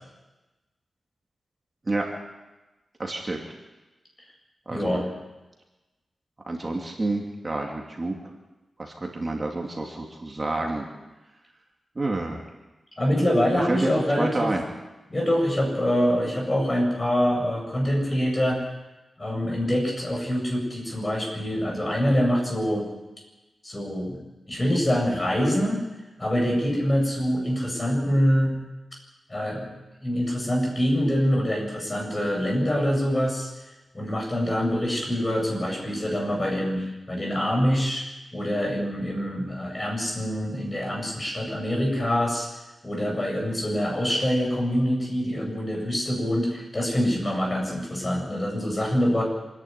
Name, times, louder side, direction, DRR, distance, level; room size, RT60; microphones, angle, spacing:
voice 1, 3.0-3.4 4.7-5.0 6.5-8.2 8.8-10.8 12.0-12.4 13.7-14.6, right 2 dB, 30° right, 0 dB, 2.6 m, -29 dB
voice 2, 4.7-5.1 13.0-14.5 15.1-18.6 19.2-22.9 23.6-24.2 24.5-25.8 26.2-28.6 29.3-29.7 30.0-33.5 33.9-38.0 38.3-42.5 42.8-49.2, equal, 25° left, 0 dB, 7.7 m, -25 dB
26.5 x 11.0 x 9.5 m, 1.1 s
wide cardioid pair, 105°, 0 cm